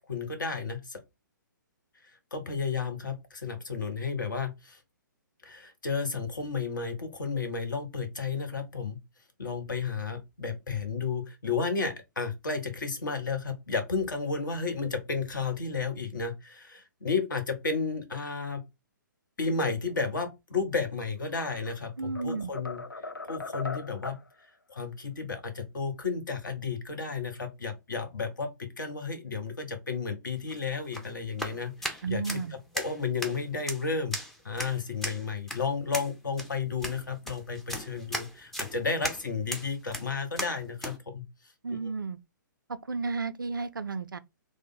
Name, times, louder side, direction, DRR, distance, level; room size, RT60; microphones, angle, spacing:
voice 1, 0.1-1.0 2.3-4.8 5.4-9.0 9.4-18.6 19.4-22.8 23.3-24.2 24.7-32.2 32.7-34.2 34.4-41.2, left 4 dB, 70° left, 0.9 m, -32 dB
sound 1, 21.3-21.8 22.2-24.3, left 2 dB, 85° left, 0.4 m, -39 dB
voice 2, 22.0-22.5 32.0-32.6 41.6-42.2 42.7-44.2, right 4 dB, 80° right, 0.4 m, -33 dB
sound 2, 30.3-41.0, equal, 5° left, 0.4 m, -38 dB
3.2 x 2.0 x 3.8 m
figure-of-eight pair, 125°, 11 cm